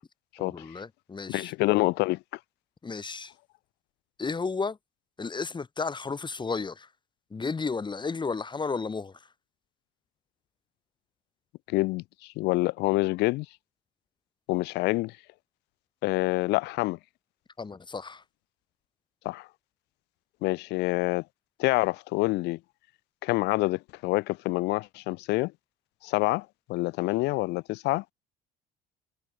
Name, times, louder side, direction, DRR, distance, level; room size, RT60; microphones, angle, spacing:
voice 1, 0.4-1.5 2.8-3.3 4.2-4.8 5.2-6.9 7.3-9.2 17.6-18.2, left 4 dB, 25° left, 4.0 m, -33 dB
voice 2, 1.3-2.2 11.7-12.0 12.4-13.5 14.5-15.1 16.0-17.0 19.2-19.5 20.4-21.2 21.6-22.6 23.2-25.5 26.0-28.0, left 21 dB, 65° left, 0.7 m, -27 dB
hypercardioid pair, 75°, 18 cm